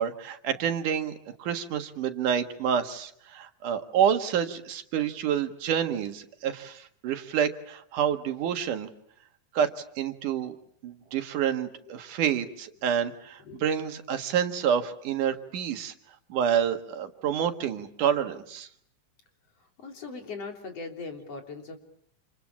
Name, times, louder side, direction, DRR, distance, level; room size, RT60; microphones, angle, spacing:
voice 1, 0.0-8.9 9.5-10.5 10.8-15.9 16.3-18.7, right 8 dB, 80° right, 7 dB, 3.2 m, -28 dB
voice 2, 19.8-21.8, left 4 dB, 50° left, 4 dB, 4.2 m, -39 dB
28.5 x 27.5 x 7.5 m, 0.67 s
omnidirectional pair, 3.6 m